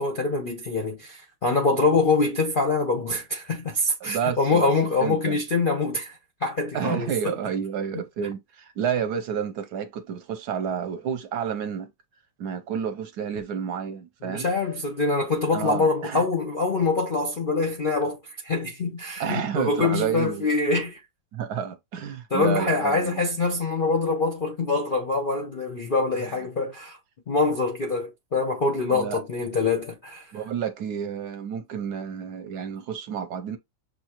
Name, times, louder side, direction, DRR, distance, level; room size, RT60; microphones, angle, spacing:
voice 1, 0.0-7.3 14.2-18.2 18.4-21.0 22.3-27.0 27.3-30.3, left 3 dB, 55° left, 0.6 m, -24 dB
voice 2, 4.0-4.7 5.0-5.4 6.7-11.9 12.4-14.5 15.5-16.2 19.2-20.5 21.3-23.2 28.9-29.2 30.3-33.6, right 8 dB, 70° right, 1.1 m, -30 dB
6.1 x 2.7 x 2.9 m
omnidirectional pair, 2.0 m